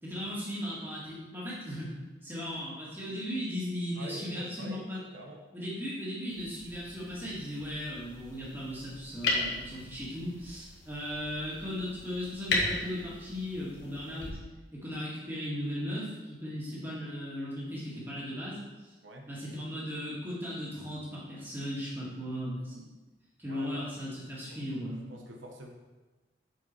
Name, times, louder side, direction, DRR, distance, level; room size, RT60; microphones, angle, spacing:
voice 1, 0.0-1.9 2.2-5.0 5.5-14.4 14.7-18.9 19.2-22.9 23.4-25.1, equal, 10° right, -7 dB, 2.0 m, -37 dB
voice 2, 3.9-4.9 5.1-5.4 19.0-19.3 23.4-23.8 24.5-24.8 25.1-25.7, right 1 dB, 85° right, 1 dB, 1.0 m, -45 dB
sound 1, 6.3-14.3, left 2 dB, 65° left, 1.5 m, -37 dB
6.7 x 5.3 x 4.6 m, 1.2 s
head